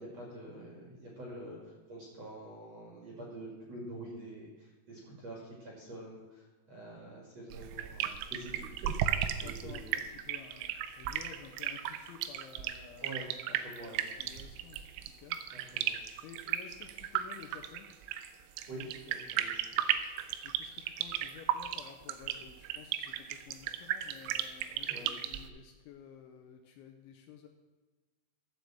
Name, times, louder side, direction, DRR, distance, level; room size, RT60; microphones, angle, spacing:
voice 1, 0.0-10.0 13.0-14.1 15.7-16.0 18.7-19.8 24.8-25.2, right 1 dB, 50° right, -2 dB, 2.2 m, -46 dB
sound 1, 7.5-25.5, right 11 dB, 85° right, 3.4 m, -35 dB
voice 2, 9.4-13.1 13.9-14.8 15.2-15.7 16.2-17.9 20.4-27.5, left 8 dB, 85° left, 4 dB, 2.8 m, -52 dB
15.0 x 5.3 x 7.6 m, 1.3 s
omnidirectional pair, 5.9 m